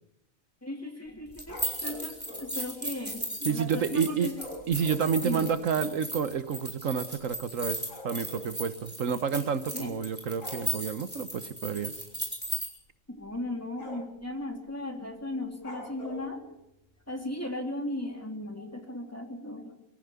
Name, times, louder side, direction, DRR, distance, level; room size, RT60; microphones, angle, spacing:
voice 1, 0.6-1.6 1.8-4.3 5.2-5.5 9.7-9.9 13.1-16.4 17.1-19.7, left 1 dB, 10° left, 3 dB, 3.1 m, -36 dB
sound 1, 1.1-2.5 4.3-5.7 6.4-6.5 6.7-6.9 7.2-8.5 9.6-9.9 10.3-10.7 12.0-12.3 12.6-12.7 13.2-13.4 13.8-14.2 15.6-16.3, left 1 dB, 70° left, 6.3 m, -44 dB
sound 2, 1.3-12.7, right 1 dB, 5° right, 4.9 m, -36 dB
voice 2, 3.4-4.3 4.7-11.9, right 6 dB, 75° right, 12 dB, 1.4 m, -29 dB
24.0 x 14.5 x 8.2 m, 0.86 s
omnidirectional pair, 1.4 m